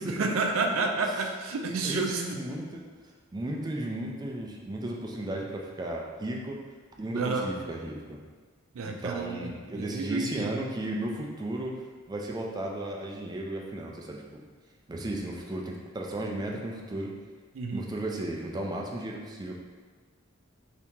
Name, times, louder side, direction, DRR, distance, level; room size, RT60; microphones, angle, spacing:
voice 1, 0.0-2.2 7.1-7.5 8.7-10.5 17.5-17.9, right 3 dB, 85° right, 3 dB, 0.4 m, -30 dB
voice 2, 1.8-2.8 3.3-6.6 7.0-8.2 8.8-11.8 12.1-14.4 14.9-17.1 17.7-19.6, right 1 dB, 20° right, -1 dB, 0.4 m, -34 dB
2.9 x 2.8 x 3.5 m, 1.5 s
head